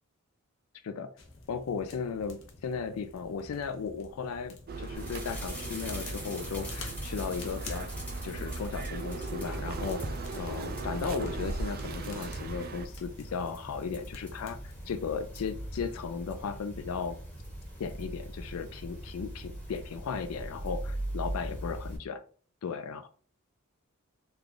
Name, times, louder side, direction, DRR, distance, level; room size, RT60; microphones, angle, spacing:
sound 1, 1.2-15.5, left 3 dB, 70° left, 0.8 m, -51 dB
voice 1, 1.5-7.9 8.2-10.0 10.3-14.6 14.9-17.2 17.8-22.2 22.6-23.1, left 5 dB, 85° left, 9 dB, 0.4 m, -36 dB
sound 2, 4.7-12.9, right 3 dB, 45° right, 0.4 m, -38 dB
sound 3, 4.9-22.0, equal, 5° left, 0.9 m, -41 dB
3.3 x 2.4 x 3.7 m, 0.43 s
head